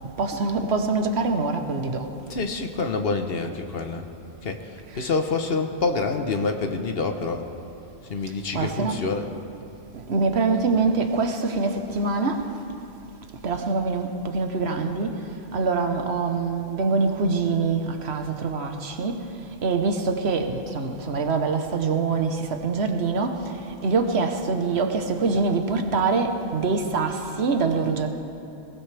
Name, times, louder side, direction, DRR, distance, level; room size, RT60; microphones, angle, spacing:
voice 1, 0.2-2.1 8.5-9.0 10.1-12.4 13.4-15.1 15.5-19.2 19.6-23.4 23.8-28.1, right 4 dB, 75° right, 5 dB, 1.3 m, -24 dB
voice 2, 2.3-4.0 4.4-4.6 4.9-7.4 8.1-9.3, left 4 dB, 65° left, 6 dB, 1.2 m, -27 dB
20.5 x 19.0 x 3.4 m, 2.8 s
omnidirectional pair, 1.1 m